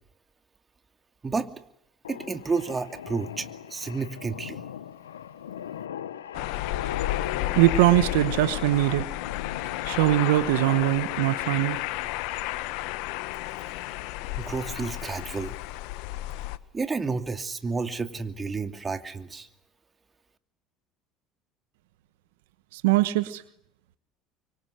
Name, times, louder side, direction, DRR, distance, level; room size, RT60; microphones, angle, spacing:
sound 1, 2.0-12.0, left 9 dB, 90° left, 1.3 m, -39 dB
voice 1, 2.1-4.6 14.4-15.6 16.7-19.5, right 4 dB, 25° right, 10 dB, 2.5 m, -31 dB
sound 2, 6.3-16.6, left 17 dB, 70° left, 1.4 m, -32 dB
voice 2, 7.5-9.1 9.8-11.8 22.7-23.4, right 16 dB, 75° right, 15 dB, 1.2 m, -22 dB
24.5 x 24.5 x 8.0 m, 0.75 s
hypercardioid pair, 70°, 0 cm